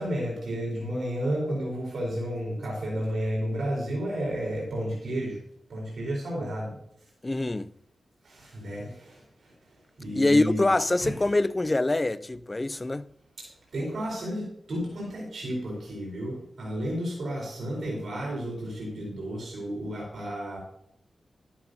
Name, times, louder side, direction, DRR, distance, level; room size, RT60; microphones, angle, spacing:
voice 1, 0.0-5.4 5.7-6.8 8.2-9.5 10.0-10.7 11.0-11.1 13.4-13.5 13.7-20.6, equal, 70° right, 4.0 m, -32 dB
voice 2, 7.2-7.7 10.1-13.1, left 2 dB, 20° left, 0.4 m, -24 dB
12.5 x 11.5 x 2.7 m
wide cardioid pair, 115°, 0 cm